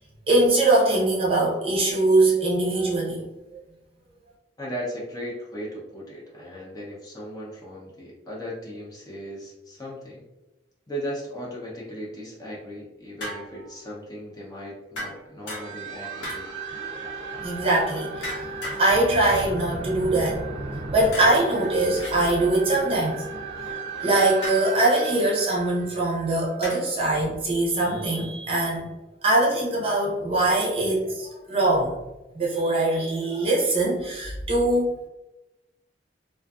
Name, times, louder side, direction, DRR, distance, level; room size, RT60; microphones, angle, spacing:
voice 1, 0.3-3.3 17.4-20.4 20.9-23.2 24.0-28.9 29.2-32.0 32.3-35.0, right 2 dB, 30° right, -3 dB, 0.6 m, -22 dB
voice 2, 4.6-10.3 10.9-16.5, equal, 20° left, -5 dB, 0.6 m, -37 dB
sound 1, 13.2-13.8 15.0-15.9 16.2-16.7 18.2-18.8 19.2-19.5 21.1-22.2 24.4-24.7 26.6-27.0, left 1 dB, 80° left, 0.9 m, -36 dB
sound 2, 15.6-26.8, right 4 dB, 75° right, 0.4 m, -35 dB
2.5 x 2.4 x 2.3 m, 1.0 s
head